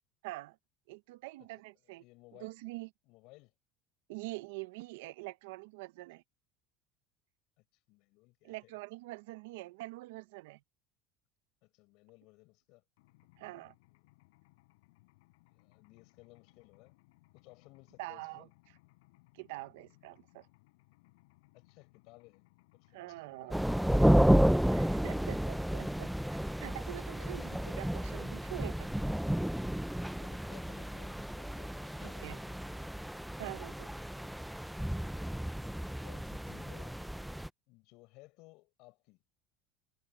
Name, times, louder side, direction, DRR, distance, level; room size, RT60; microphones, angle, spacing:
voice 1, 0.2-0.6 0.9-2.0 2.4-2.9 4.1-6.2 8.4-10.6 13.4-13.7 18.0-18.5 19.3-20.5 22.9-23.6 24.7-26.1 26.6-28.9 32.0-32.4 33.4-33.9, right 21 dB, 80° right, 0.9 m, -44 dB
voice 2, 1.9-2.5 3.0-3.5 7.6-8.7 11.6-12.8 13.4-13.9 15.4-16.9 17.3-18.5 21.5-22.5 22.7-24.4 25.0-25.1 27.2-27.8 30.2-33.1 35.8-37.0 37.7-39.2, left 23 dB, 65° left, 5.6 m, -59 dB
Mechanisms, 13.0-29.8, left 24 dB, 80° left, 6.7 m, -66 dB
sound 1, 23.5-37.5, equal, ahead, 0.4 m, -31 dB
supercardioid pair, 115°, 0 cm